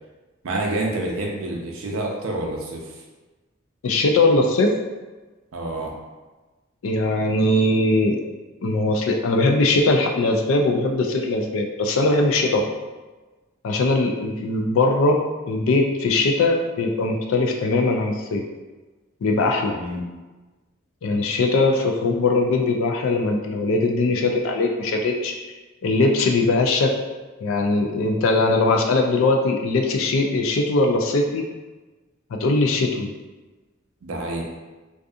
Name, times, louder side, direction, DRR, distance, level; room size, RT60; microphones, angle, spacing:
voice 1, 0.4-2.8 5.5-5.9 19.7-20.0 34.0-34.5, right 2 dB, 80° right, -1 dB, 0.5 m, -28 dB
voice 2, 3.8-4.7 6.8-8.2 8.6-12.7 13.6-18.4 19.2-19.8 21.0-25.3 25.8-26.9 27.4-31.4 32.3-33.1, left 2 dB, 70° left, 2 dB, 0.3 m, -20 dB
2.6 x 2.4 x 2.4 m, 1.2 s
head